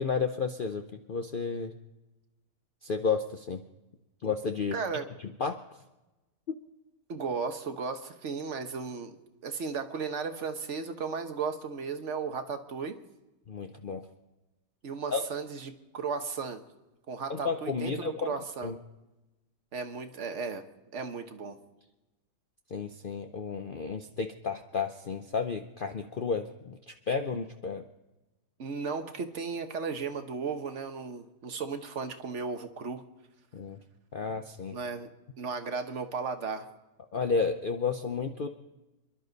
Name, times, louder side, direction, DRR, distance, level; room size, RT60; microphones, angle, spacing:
voice 1, 0.0-1.7 2.8-3.6 4.2-4.8 5.4-5.8 6.5-6.6 13.5-14.0 15.1-15.2 17.3-18.3 18.6-18.8 22.7-27.8 33.5-33.8 34.1-34.8 37.1-38.5, left 5 dB, 85° left, 6 dB, 0.4 m, -32 dB
voice 2, 4.7-5.1 7.1-9.2 9.4-13.0 14.8-16.6 17.1-18.7 19.7-20.7 20.9-21.6 28.6-33.0 34.7-35.1 35.4-36.6, right 5 dB, 50° right, 7 dB, 1.3 m, -35 dB
27.5 x 11.5 x 4.0 m, 1.1 s
omnidirectional pair, 1.8 m